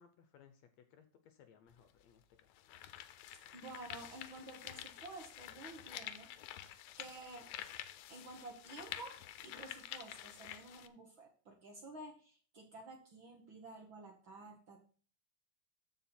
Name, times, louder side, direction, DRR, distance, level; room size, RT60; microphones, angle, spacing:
voice 1, 0.0-2.5, left 7 dB, 70° left, 8 dB, 1.9 m, -64 dB
sound 1, 1.7-1.8 2.4-10.9, left 12 dB, 90° left, 2.2 m, -49 dB
voice 2, 3.5-6.3 7.0-7.5 8.1-14.8, right 2 dB, 50° right, 2 dB, 1.6 m, -52 dB
14.0 x 4.8 x 4.4 m, 0.41 s
omnidirectional pair, 3.6 m